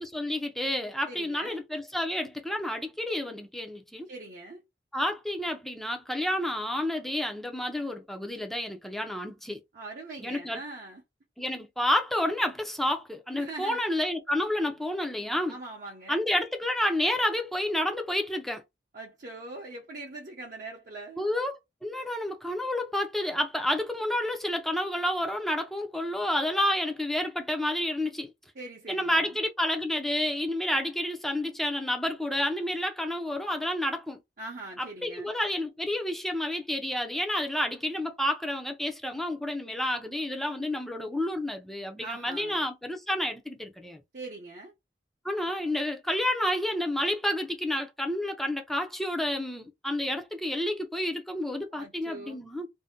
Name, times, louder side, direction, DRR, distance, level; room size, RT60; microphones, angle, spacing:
voice 1, 0.0-4.1 4.9-9.6 10.2-10.6 11.4-15.6 16.1-18.6 21.2-28.3 28.9-34.2 34.8-44.0 45.2-52.7, left 1 dB, ahead, 0.5 m, -30 dB
voice 2, 1.1-1.6 4.1-4.6 9.7-11.0 13.4-13.8 15.5-16.2 18.9-21.3 28.5-29.4 34.4-35.3 41.9-42.6 44.1-44.7 51.7-52.4, right 2 dB, 50° right, 0.7 m, -42 dB
2.6 x 2.1 x 3.5 m
head